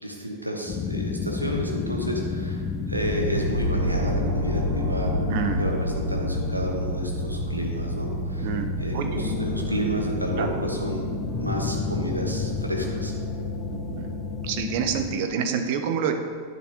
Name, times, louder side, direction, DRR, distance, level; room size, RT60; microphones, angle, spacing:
voice 1, 0.0-2.6 2.9-5.3 5.6-8.5 8.8-11.1 11.4-13.1, equal, 85° right, 1 dB, 1.1 m, -31 dB
sound 1, 0.7-15.1, left 6 dB, 30° left, 0.5 m, -32 dB
sound 2, 3.0-14.9, right 1 dB, 20° right, 1.8 m, -30 dB
voice 2, 5.3-5.7 8.4-9.3 10.4-10.5 13.9-14.1 14.4-16.1, right 7 dB, 50° right, 6 dB, 0.7 m, -27 dB
10.0 x 6.7 x 2.9 m, 2.1 s
figure-of-eight pair, 90°, 0 cm